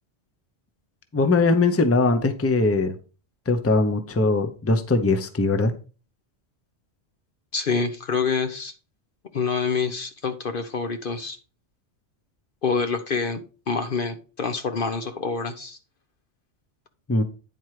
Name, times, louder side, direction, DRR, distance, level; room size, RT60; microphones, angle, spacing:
voice 1, 1.1-2.9 3.5-5.7 17.1-17.2, left 3 dB, 15° left, 0.7 m, -21 dB
voice 2, 7.5-8.7 9.3-11.4 12.6-13.4 13.7-15.8, left 5 dB, 55° left, 0.9 m, -26 dB
9.4 x 4.5 x 4.8 m
omnidirectional pair, 1.2 m